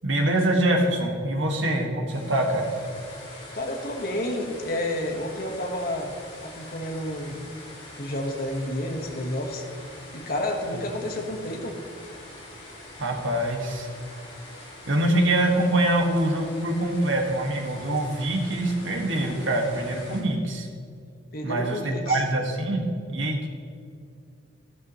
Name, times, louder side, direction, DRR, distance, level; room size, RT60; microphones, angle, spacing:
voice 1, 0.0-2.7 10.7-10.8 13.0-13.9 14.8-20.7 21.4-23.5, right 1 dB, 85° right, 1 dB, 1.7 m, -24 dB
sound 1, 2.1-20.2, left 1 dB, 25° left, 2.8 m, -44 dB
voice 2, 3.5-6.1 6.4-7.4 8.0-9.6 10.1-11.8 21.3-22.2, left 1 dB, 50° left, 2 dB, 1.4 m, -30 dB
12.5 x 11.5 x 3.1 m, 2.3 s
head